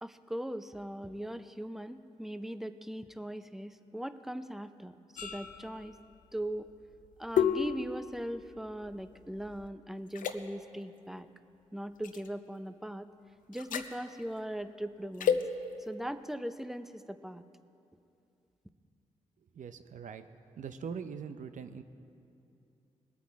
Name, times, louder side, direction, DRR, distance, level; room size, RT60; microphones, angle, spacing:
voice 1, 0.0-4.9 5.2-6.0 6.3-6.7 7.2-11.3 11.7-13.1 13.5-15.5 15.8-17.4, equal, 5° right, 12 dB, 0.6 m, -40 dB
sound 1, 5.2-9.7 10.1-10.4 12.0-12.3 13.5-13.9 15.2-15.4, left 8 dB, 80° left, 0.6 m, -33 dB
voice 2, 19.5-20.3 20.5-21.8, right 6 dB, 70° right, 10 dB, 0.6 m, -42 dB
19.5 x 8.3 x 4.7 m, 2.6 s
cardioid pair, 50°, 14 cm